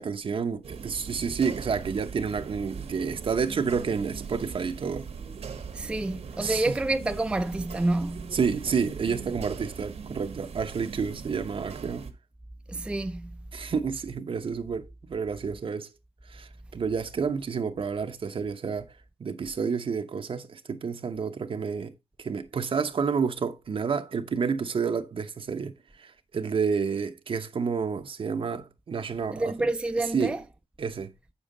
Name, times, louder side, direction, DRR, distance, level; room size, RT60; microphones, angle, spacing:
voice 1, 0.0-5.1 6.4-6.7 8.3-12.1 13.5-15.9 16.3-18.9 19.2-21.9 22.2-26.1 26.3-29.5 30.1-30.4 30.8-31.1, right 5 dB, 60° right, 0.9 m, -29 dB
sound 1, 0.6-12.1, right 6 dB, 80° right, 1.3 m, -40 dB
voice 2, 5.7-8.4 12.7-13.3 29.3-30.4, right 2 dB, 10° right, 0.4 m, -28 dB
8.2 x 7.0 x 3.9 m
wide cardioid pair, 170°, 11 cm